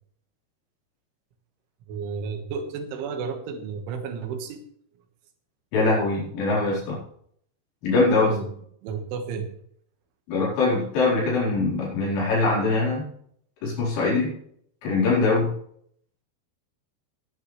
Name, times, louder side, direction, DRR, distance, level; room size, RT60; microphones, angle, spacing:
voice 1, 1.9-4.6 8.3-8.5 8.8-9.5, right 5 dB, 80° right, 6 dB, 4.0 m, -32 dB
voice 2, 5.7-7.0 7.8-8.4 10.3-13.0 13.6-14.3 14.8-15.5, left 3 dB, 80° left, -6 dB, 6.9 m, -22 dB
19.0 x 11.0 x 3.3 m, 0.65 s
omnidirectional pair, 5.5 m